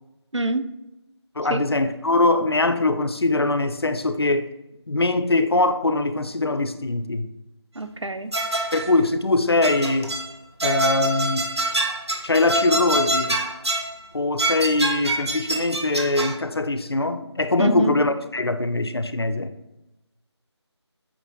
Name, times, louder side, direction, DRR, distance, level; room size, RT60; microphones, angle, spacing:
voice 1, 0.3-0.7 1.5-1.6 7.7-8.3 17.6-18.0, right 2 dB, 85° right, 0.7 m, -26 dB
voice 2, 1.4-4.5 4.9-7.3 8.7-10.2 10.6-11.5 12.2-13.5 14.1-19.6, left 2 dB, 60° left, 0.7 m, -22 dB
sound 1, 8.3-9.0 9.6-10.3 10.6-13.9 14.4-16.4, right 1 dB, 65° right, 1.3 m, -25 dB
8.6 x 4.3 x 3.9 m
figure-of-eight pair, 165°, 15 cm